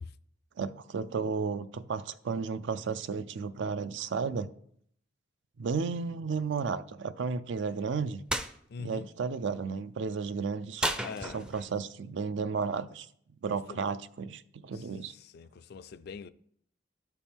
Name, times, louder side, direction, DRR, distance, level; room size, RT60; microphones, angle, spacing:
voice 1, 0.6-4.5 5.6-8.2 8.8-10.9 11.2-13.1 13.4-15.1, right 5 dB, 70° right, 0.4 m, -33 dB
sound 1, 8.3-8.5 10.8-11.7, right 1 dB, 5° right, 0.4 m, -32 dB
voice 2, 8.7-9.1 11.0-11.4 13.7-13.9 15.3-16.3, left 5 dB, 60° left, 0.4 m, -42 dB
12.5 x 4.3 x 3.5 m
head